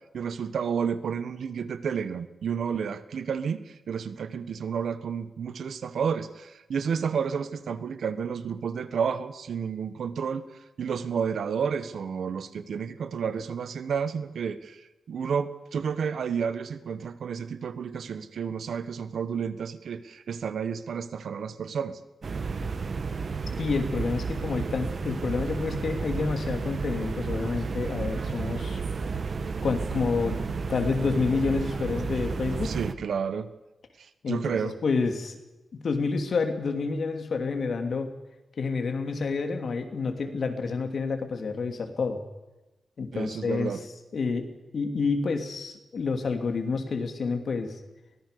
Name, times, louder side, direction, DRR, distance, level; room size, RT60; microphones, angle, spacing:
voice 1, 0.1-10.4 10.8-22.0 32.6-33.5 34.0-34.8 43.1-43.8, right 6 dB, 80° right, 12 dB, 1.5 m, -31 dB
sound 1, 22.2-32.9, right 4 dB, 50° right, 1.3 m, -32 dB
voice 2, 23.6-28.8 29.6-30.4 30.7-32.7 34.2-35.4 35.7-38.1 38.6-42.2 43.0-43.7 44.1-44.5 44.7-47.7, left 4 dB, 60° left, 6 dB, 2.9 m, -29 dB
23.0 x 18.5 x 6.9 m, 1.0 s
wide cardioid pair, 125°, 0 cm